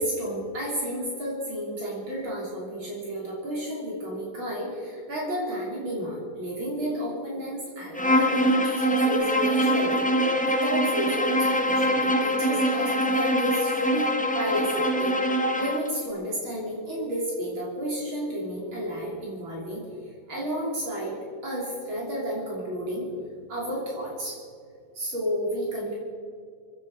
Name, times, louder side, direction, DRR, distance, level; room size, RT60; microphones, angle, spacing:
voice 1, 0.0-19.8 20.3-23.0 23.5-24.4 24.9-26.0, equal, 65° right, -4 dB, 4.3 m, -31 dB
Bowed string instrument, 7.9-15.9, equal, 5° left, 0.7 m, -24 dB
26.5 x 10.5 x 4.8 m, 2.3 s
omnidirectional pair, 2.3 m